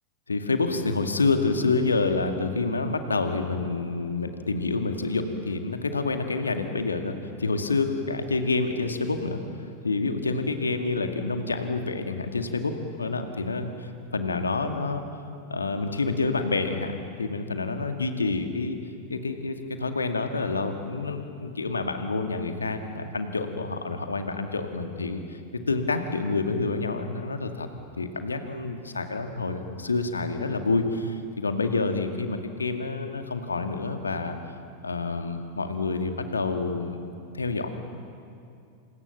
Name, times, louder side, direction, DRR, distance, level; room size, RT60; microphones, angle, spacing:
voice 1, 0.3-9.4 9.8-15.0 15.5-18.8 19.1-25.4 25.7-27.7 28.0-34.4 34.8-37.0 37.3-37.7, left 3 dB, 75° left, 6 dB, 2.1 m, -28 dB
28.0 x 27.5 x 7.1 m, 2.5 s
figure-of-eight pair, 90°, 0 cm